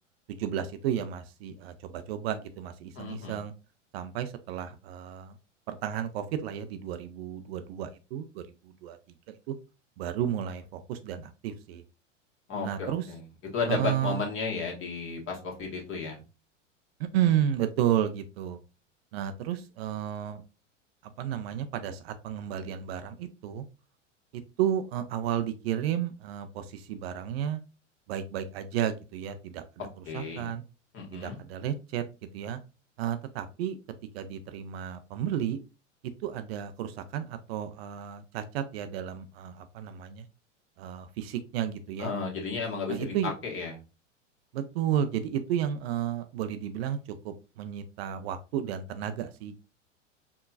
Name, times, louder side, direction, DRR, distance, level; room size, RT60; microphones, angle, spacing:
voice 1, 0.3-3.5 3.9-5.3 5.7-8.4 8.8-9.0 9.5-9.6 10.0-11.8 12.6-13.0 13.7-14.2 17.1-18.6 19.1-20.4 21.0-23.6 24.3-27.6 28.1-29.6 30.1-30.6 31.1-32.0 32.3-32.6 33.0-33.8 34.1-35.6 36.2-40.3 40.8-42.1 42.9-43.3 44.5-47.0 47.2-49.6, right 10 dB, 55° right, 10 dB, 0.6 m, -32 dB
voice 2, 3.0-3.4 12.5-13.2 13.5-16.2 30.1-30.5 30.9-31.4 42.0-43.8, left 4 dB, 35° left, 0 dB, 1.7 m, -33 dB
4.6 x 2.9 x 2.3 m, 0.30 s
hypercardioid pair, 95°, 38 cm